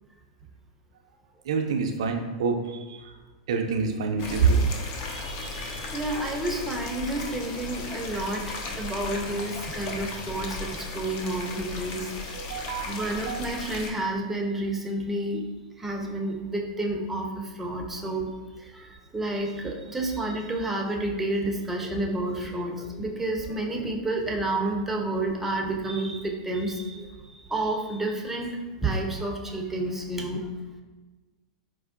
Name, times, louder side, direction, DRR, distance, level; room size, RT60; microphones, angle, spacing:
voice 1, 1.4-3.1 3.5-4.7 12.3-13.4, right 5 dB, 65° right, 3 dB, 0.4 m, -26 dB
sound 1, 4.2-13.9, left 3 dB, 45° left, 0.5 m, -36 dB
voice 2, 5.1-12.1 12.9-15.4 15.8-18.3 18.6-27.1 27.5-30.5, right 2 dB, 10° right, 0 dB, 0.5 m, -30 dB
4.3 x 2.2 x 2.4 m, 1.2 s
hypercardioid pair, 100°, 3 cm